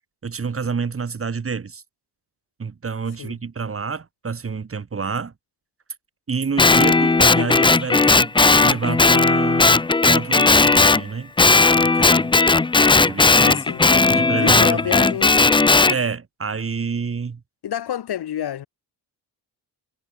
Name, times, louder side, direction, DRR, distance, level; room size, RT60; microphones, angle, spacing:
voice 1, 0.2-1.8 2.6-5.3 6.3-8.3 8.6-12.3 13.0-13.6 14.1-15.0 15.9-17.4, right 5 dB, 35° right, 1.9 m, -28 dB
Guitar, 6.6-11.0 11.4-16.0, left 3 dB, 15° left, 0.4 m, -16 dB
voice 2, 13.4-15.7 17.6-18.7, left 10 dB, 70° left, 1.2 m, -29 dB
wide cardioid pair, 145°, 41 cm